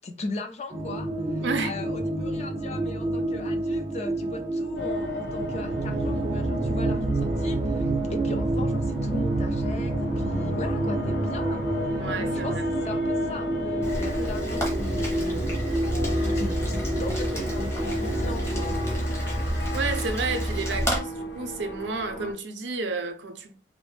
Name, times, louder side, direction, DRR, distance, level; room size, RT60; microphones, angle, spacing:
voice 1, 0.0-12.0 12.4-12.5 12.8-15.4 16.3-18.8, left 2 dB, 35° left, 0.4 m, -38 dB
sound 1, 0.7-18.9, right 2 dB, 30° right, 0.5 m, -29 dB
voice 2, 1.4-1.8 12.0-12.6 19.7-23.5, right 3 dB, 80° right, 0.5 m, -31 dB
sound 2, 4.7-22.3, left 1 dB, 75° left, 0.6 m, -35 dB
Rain, 13.8-21.0, equal, 15° left, 0.7 m, -30 dB
2.5 x 2.1 x 3.1 m
head